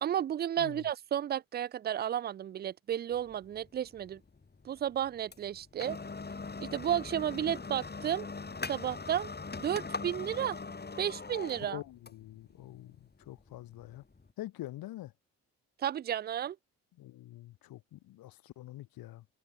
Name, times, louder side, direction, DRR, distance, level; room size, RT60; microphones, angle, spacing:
voice 1, 0.0-4.2 4.6-6.0 6.6-8.3 8.7-9.3 9.6-10.6 11.0-11.8 15.8-16.6, right 10 dB, 30° right, 0.3 m, -32 dB
sound 1, 3.1-14.3, left 4 dB, 25° left, 2.3 m, -42 dB
voice 2, 11.6-14.0 14.4-15.1 17.0-19.3, left 15 dB, 70° left, 1.2 m, -45 dB
hypercardioid pair, 50°, 38 cm